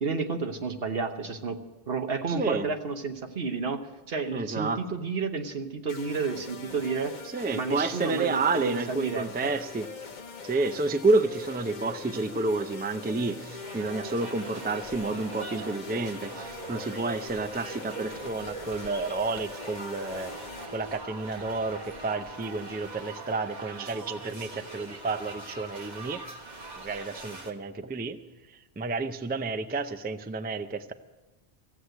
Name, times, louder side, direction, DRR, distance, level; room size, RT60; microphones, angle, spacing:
voice 1, 0.0-1.6 1.9-7.1 7.5-9.3, right 4 dB, 70° right, 6 dB, 1.3 m, -31 dB
voice 2, 2.3-2.7 4.3-4.8 7.2-9.9 10.4-20.3 20.7-26.2 26.7-28.2 28.5-30.9, right 3 dB, 15° right, 10 dB, 0.4 m, -30 dB
sound 1, 5.9-20.7, left 4 dB, 50° left, 1.1 m, -43 dB
sound 2, 13.6-27.5, right 2 dB, 45° right, 1.5 m, -42 dB
15.0 x 8.1 x 9.1 m, 1.1 s
omnidirectional pair, 1.0 m